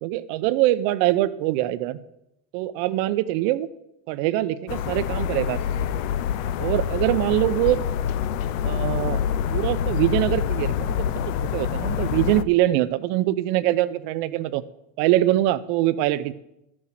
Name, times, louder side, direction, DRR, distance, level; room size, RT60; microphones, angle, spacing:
voice 1, 0.0-2.0 2.5-3.7 4.1-5.9 6.6-7.8 8.6-9.2 9.5-11.1 11.4-14.6 15.0-16.3, right 15 dB, 60° right, 14 dB, 0.8 m, -23 dB
sound 1, 4.7-12.4, left 8 dB, 75° left, 0.7 m, -26 dB
12.0 x 6.2 x 7.5 m, 0.85 s
supercardioid pair, 135°, 39 cm